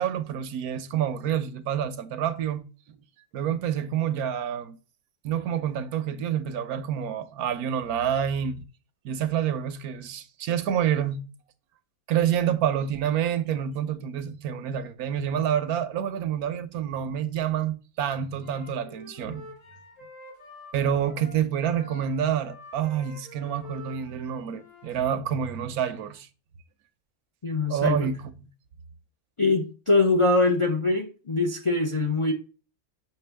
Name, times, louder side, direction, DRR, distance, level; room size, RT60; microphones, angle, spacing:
voice 1, 0.0-2.6 3.3-4.8 5.2-8.6 9.0-11.2 12.1-19.5 20.7-26.3 27.7-28.5, right 9 dB, 85° right, 1.2 m, -28 dB
Wind instrument woodwind instrument, 18.3-25.0, left 1 dB, 60° left, 4.5 m, -47 dB
voice 2, 27.4-28.1 29.4-32.3, left 3 dB, 35° left, 0.5 m, -23 dB
6.7 x 5.9 x 3.3 m
omnidirectional pair, 1.5 m